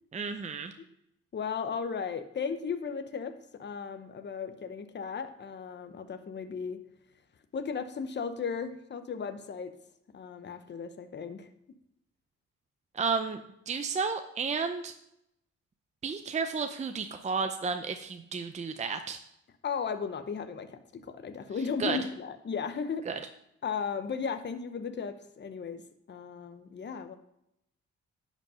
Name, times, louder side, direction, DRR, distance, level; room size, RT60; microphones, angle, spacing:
voice 1, 0.1-0.7 12.9-13.4 13.7-14.9 16.0-19.2 21.8-22.0 23.1-23.2, right 5 dB, 25° right, 7 dB, 0.6 m, -32 dB
voice 2, 1.3-6.8 7.5-9.7 10.1-11.5 19.6-23.1 23.6-25.8 26.1-27.2, left 6 dB, 35° left, 9 dB, 0.9 m, -35 dB
11.0 x 5.4 x 4.9 m, 0.79 s
cardioid pair, 90°, 30 cm